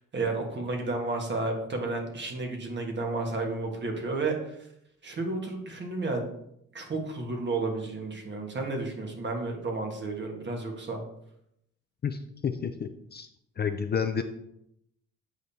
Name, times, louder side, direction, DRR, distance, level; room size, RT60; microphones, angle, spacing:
voice 1, 0.1-4.3 5.0-6.3 6.7-11.0, right 3 dB, 35° right, 2 dB, 1.5 m, -32 dB
voice 2, 12.0-13.3 13.6-14.2, left 6 dB, 35° left, 8 dB, 0.4 m, -30 dB
7.8 x 5.1 x 2.8 m, 0.77 s
cardioid pair, 90°, 30 cm